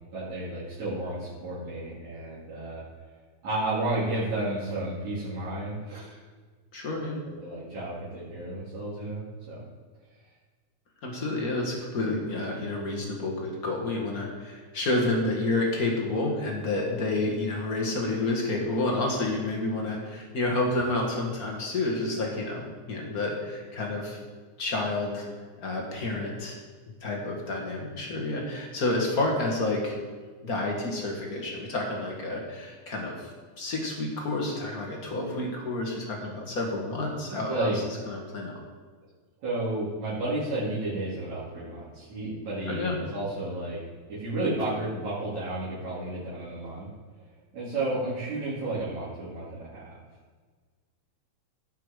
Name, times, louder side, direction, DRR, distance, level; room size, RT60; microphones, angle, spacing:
voice 1, 0.1-2.8 3.4-6.2 7.4-9.6 37.3-37.8 39.4-43.8 44.1-46.9 47.5-50.0, right 2 dB, 65° right, -11 dB, 4.1 m, -32 dB
voice 2, 6.7-7.2 11.0-22.6 22.9-24.2 24.6-25.3 25.6-26.6 27.0-30.0 30.4-38.5 42.7-43.0, left 2 dB, 35° left, -1 dB, 1.8 m, -29 dB
16.5 x 5.8 x 5.1 m, 1.5 s
omnidirectional pair, 3.5 m